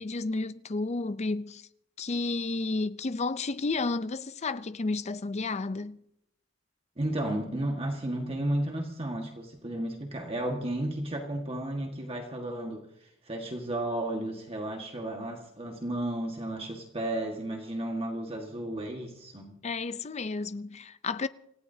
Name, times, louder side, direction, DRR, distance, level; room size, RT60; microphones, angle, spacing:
voice 1, 0.0-1.6 2.0-6.0 19.6-21.3, left 3 dB, 35° left, 0.5 m, -32 dB
voice 2, 7.0-19.6, right 1 dB, 30° right, 1.7 m, -33 dB
27.5 x 16.0 x 2.8 m
head